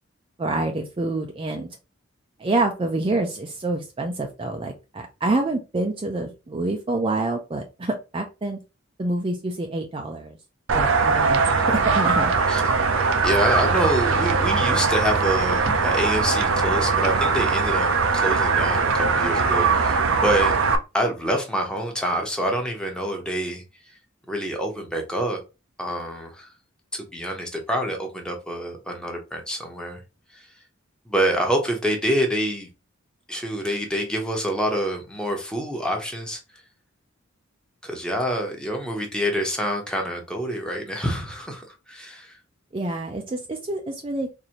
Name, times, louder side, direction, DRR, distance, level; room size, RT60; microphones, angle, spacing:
voice 1, 0.4-1.7 2.4-8.6 9.0-10.4 10.7-11.4 11.7-12.3 42.7-44.3, right 2 dB, 25° right, 0.4 m, -27 dB
sound 1, 10.7-20.8, right 4 dB, 80° right, 0.5 m, -21 dB
voice 2, 11.4-12.0 12.5-12.6 13.2-20.6 20.9-23.6 24.3-25.4 25.8-26.5 26.9-30.0 30.3-30.5 31.1-32.7 33.3-36.4 37.8-42.4, equal, 5° left, 0.9 m, -26 dB
4.0 x 2.7 x 2.9 m
head